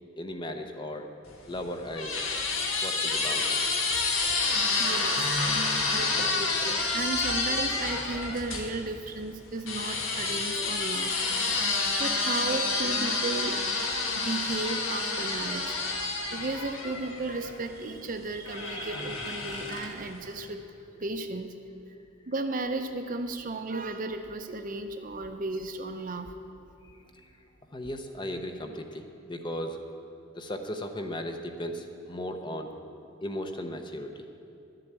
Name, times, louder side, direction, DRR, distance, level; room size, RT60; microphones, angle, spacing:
voice 1, 0.2-1.1 1.5-2.3 2.8-3.6 26.8-27.3 27.7-29.8 30.3-32.7 33.2-34.1, left 1 dB, 20° left, 5 dB, 0.7 m, -36 dB
sound 1, 1.3-8.7 9.7-17.6 18.4-20.1, left 3 dB, 75° left, 1.5 m, -29 dB
voice 2, 4.8-5.4 5.9-11.2 11.4-13.7 14.1-20.7 21.0-21.6 22.3-26.3, right 2 dB, 40° right, 7 dB, 0.7 m, -34 dB
11.5 x 7.7 x 8.8 m, 2.6 s
head